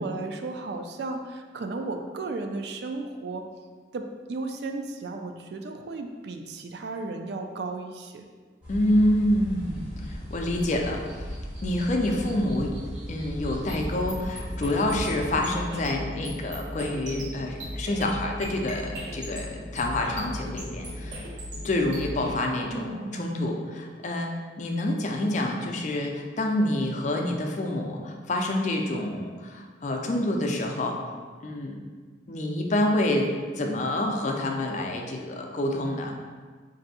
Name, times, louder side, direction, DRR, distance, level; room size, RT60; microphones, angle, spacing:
voice 1, 0.0-3.5 3.9-8.2 22.7-23.3, right 3 dB, 65° right, 5 dB, 0.3 m, -34 dB
sound 1, 8.6-15.3, equal, 5° right, 0.9 m, -37 dB
voice 2, 8.7-11.3 11.6-12.7 13.1-21.2 21.6-24.3 24.6-31.0 31.4-31.8 32.3-33.3 33.6-36.1, left 1 dB, 40° left, 2 dB, 0.4 m, -27 dB
sound 2, 13.7-22.3, equal, 80° right, 1.3 m, -37 dB
3.4 x 2.6 x 4.0 m, 1.5 s
head